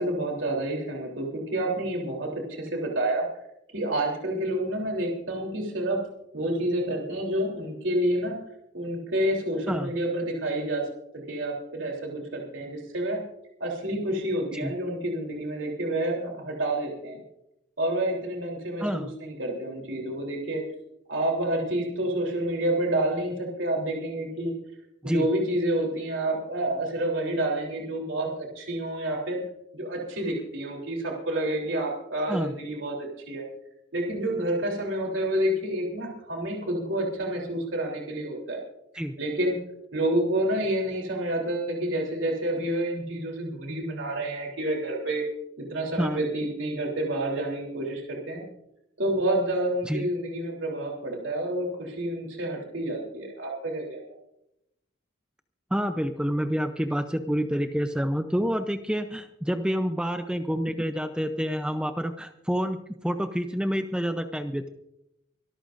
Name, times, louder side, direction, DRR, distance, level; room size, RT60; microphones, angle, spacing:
voice 1, 0.0-3.2 3.7-6.0 6.3-8.4 8.7-10.8 11.3-13.2 13.6-17.2 17.8-20.6 21.1-24.5 25.0-29.4 29.7-33.4 33.9-38.6 39.2-39.6 39.9-45.2 45.6-48.4 49.0-54.0, right 1 dB, 80° right, -1 dB, 3.4 m, -29 dB
voice 2, 55.7-64.7, equal, 5° right, 7 dB, 0.6 m, -28 dB
24.5 x 13.5 x 2.6 m, 0.83 s
head